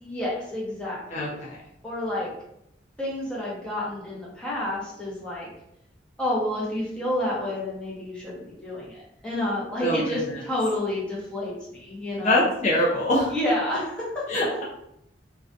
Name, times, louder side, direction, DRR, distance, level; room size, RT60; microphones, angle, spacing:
voice 1, 0.0-1.4 1.8-2.3 3.0-5.5 6.2-12.5 13.3-14.2, left 1 dB, 5° left, -7 dB, 0.8 m, -29 dB
voice 2, 1.1-1.6 9.8-10.2 12.2-13.3 14.3-14.6, left 1 dB, 40° left, -5 dB, 0.4 m, -23 dB
2.4 x 2.2 x 2.5 m, 0.78 s
head